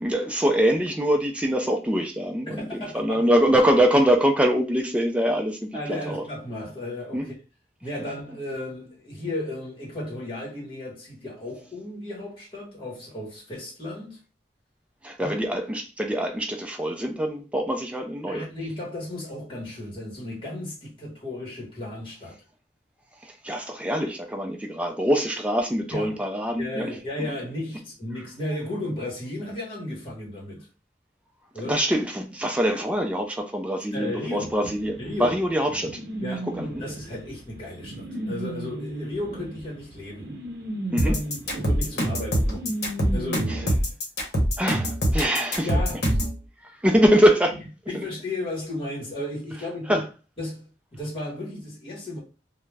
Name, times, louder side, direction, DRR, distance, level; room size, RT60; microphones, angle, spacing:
voice 1, 0.0-6.2 7.1-7.2 15.0-18.5 23.2-26.9 27.2-27.3 31.7-36.0 36.6-36.8 40.9-41.2 43.5-43.6 44.6-45.7 46.6-47.6 47.9-48.0 49.9-50.0, equal, 5° right, 0.4 m, -24 dB
voice 2, 2.5-3.3 5.7-7.3 7.8-14.2 15.2-15.4 18.3-22.4 25.9-26.2 26.6-30.7 31.5-31.8 33.9-34.6 35.0-35.4 36.2-40.4 41.0-41.2 41.5-42.7 43.1-43.7 45.6-46.2 47.9-50.1 50.4-52.2, left 1 dB, 30° left, 1.1 m, -34 dB
sound 1, 34.6-43.7, right 1 dB, 60° right, 0.6 m, -35 dB
sound 2, 41.0-46.4, equal, 65° left, 0.9 m, -23 dB
2.4 x 2.1 x 3.2 m
head